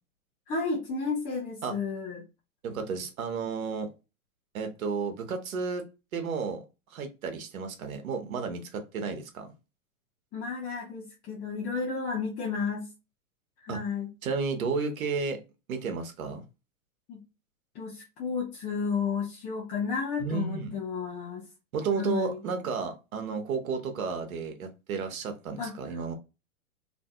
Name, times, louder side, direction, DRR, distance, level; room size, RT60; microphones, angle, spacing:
voice 1, 0.5-2.2 10.3-12.8 13.6-14.1 17.1-17.2 17.7-21.4 22.0-22.4 25.6-25.7, left 5 dB, 20° left, 0.6 m, -32 dB
voice 2, 2.6-3.9 4.5-5.8 6.1-6.6 6.9-9.5 13.7-13.8 14.2-15.4 15.7-16.4 20.2-20.7 21.7-26.1, right 5 dB, 75° right, 0.9 m, -32 dB
2.6 x 2.5 x 2.2 m
hypercardioid pair, 120°, 42 cm